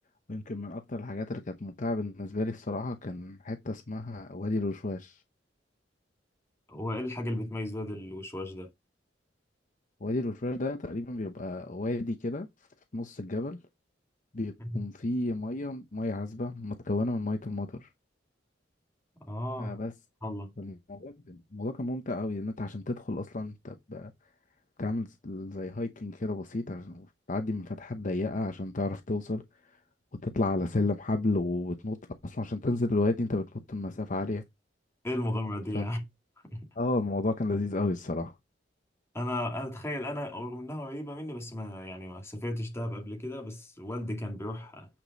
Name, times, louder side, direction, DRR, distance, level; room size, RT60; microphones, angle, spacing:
voice 1, 0.3-5.2 10.0-12.5 12.9-13.6 14.3-17.9 19.6-19.9 20.6-24.1 24.8-29.8 30.2-32.0 32.2-34.4 35.7-35.9 36.8-38.4, left 2 dB, 45° left, 0.8 m, -32 dB
voice 2, 6.7-8.7 14.6-14.8 19.2-19.8 20.2-20.5 35.0-36.0 36.5-36.7 39.1-44.9, left 1 dB, 15° left, 2.2 m, -35 dB
8.8 x 5.1 x 4.0 m
head